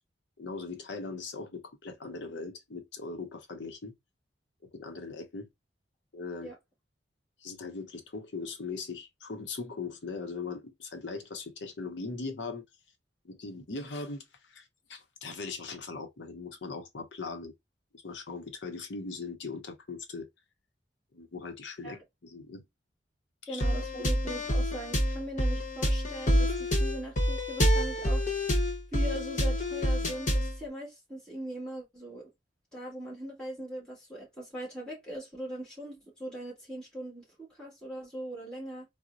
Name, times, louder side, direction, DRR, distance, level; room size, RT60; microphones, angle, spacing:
voice 1, 0.4-3.9 4.7-5.5 6.1-6.5 7.4-12.6 13.2-17.5 17.9-20.3 21.1-22.6 23.4-23.6, left 4 dB, 80° left, 0.7 m, -40 dB
voice 2, 23.5-28.2 28.9-32.3 32.7-38.8, right 1 dB, 5° left, 1.6 m, -40 dB
sound 1, 23.6-30.6, equal, 45° left, 1.0 m, -27 dB
4.0 x 2.1 x 2.4 m
head